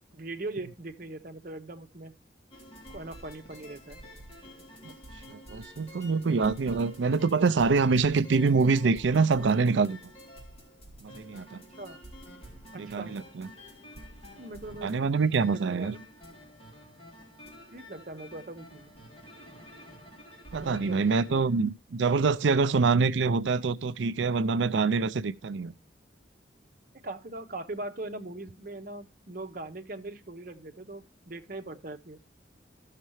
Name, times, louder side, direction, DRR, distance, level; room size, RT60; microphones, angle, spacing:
voice 1, 0.1-2.2 2.9-4.0 6.6-6.8 11.8-12.0 12.7-13.2 14.4-16.0 17.7-18.9 20.6-21.1 21.3-21.4 27.0-32.2, right 2 dB, 45° right, 1.0 m, -41 dB
sound 1, 2.5-21.6, equal, 30° left, 3.6 m, -49 dB
voice 2, 5.3-10.0 11.0-11.6 12.7-13.5 14.8-15.9 20.5-25.7, right 4 dB, 80° right, 0.5 m, -25 dB
15.5 x 6.6 x 3.1 m
head